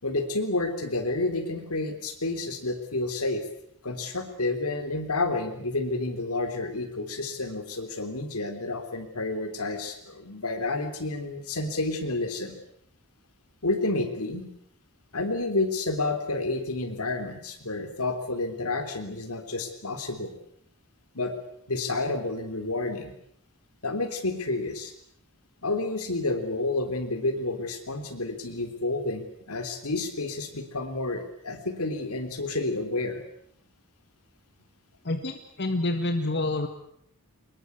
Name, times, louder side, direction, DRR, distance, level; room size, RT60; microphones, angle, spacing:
voice 1, 0.0-3.5 3.8-12.6 13.6-14.5 15.1-20.3 21.1-21.3 21.7-23.1 23.8-24.9 25.6-33.2, left 2 dB, 85° left, 8 dB, 3.6 m, -30 dB
voice 2, 35.0-36.7, left 2 dB, 50° left, 6 dB, 1.8 m, -28 dB
24.5 x 21.5 x 8.2 m, 0.71 s
head